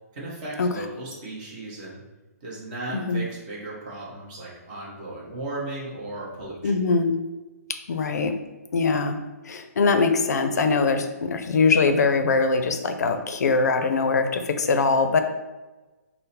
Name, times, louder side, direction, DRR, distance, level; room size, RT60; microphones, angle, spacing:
voice 1, 0.1-2.0 2.4-6.7, right 2 dB, 30° right, -5 dB, 1.1 m, -36 dB
voice 2, 2.9-3.3 6.6-7.2 7.7-8.3 8.7-9.2 9.4-15.2, left 4 dB, 75° left, 7 dB, 0.5 m, -22 dB
3.8 x 2.0 x 4.1 m, 1.2 s
hypercardioid pair, 165°, 9 cm